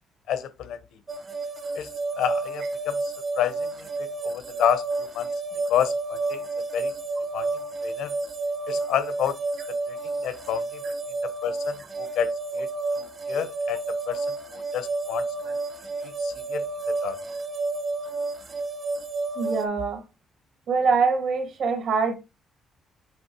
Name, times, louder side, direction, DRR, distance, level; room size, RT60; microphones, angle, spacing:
voice 1, 0.3-0.8 1.7-1.9 2.2-3.0 3.4-3.6 4.2-5.3 5.7-6.4 6.7-6.9 7.3-7.5 7.8-8.1 8.7-9.4 9.9-10.0 10.2-10.8 11.4-12.7 12.9-13.8 14.1-14.3 14.5-15.6 16.0-17.2, left 10 dB, 80° left, 1.1 m, -29 dB
sound 1, 1.1-19.6, right 3 dB, 30° right, 1.0 m, -30 dB
voice 2, 19.4-20.0 20.7-22.2, right 5 dB, 55° right, 1.9 m, -24 dB
7.9 x 3.2 x 4.6 m
cardioid pair, 175°, 0 cm